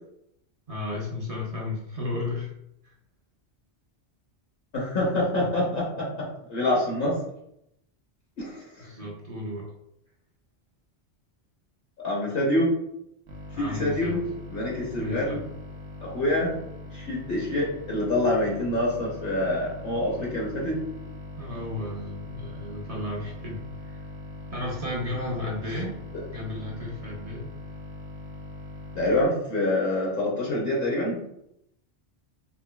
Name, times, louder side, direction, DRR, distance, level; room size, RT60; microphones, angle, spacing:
voice 1, 0.7-2.5 2.8-2.9 8.8-9.7 13.5-14.2 15.0-15.5 21.4-24.0 24.5-26.0 26.3-27.5, left 1 dB, 40° right, -3 dB, 0.6 m, -33 dB
voice 2, 4.7-7.2 8.4-8.6 12.0-12.7 13.6-14.2 14.5-15.4 16.0-20.8 28.9-31.2, left 1 dB, 60° left, -4 dB, 1.0 m, -26 dB
sound 1, 13.3-29.3, left 3 dB, 70° right, 0.9 m, -41 dB
3.8 x 2.7 x 2.2 m, 0.78 s
omnidirectional pair, 1.1 m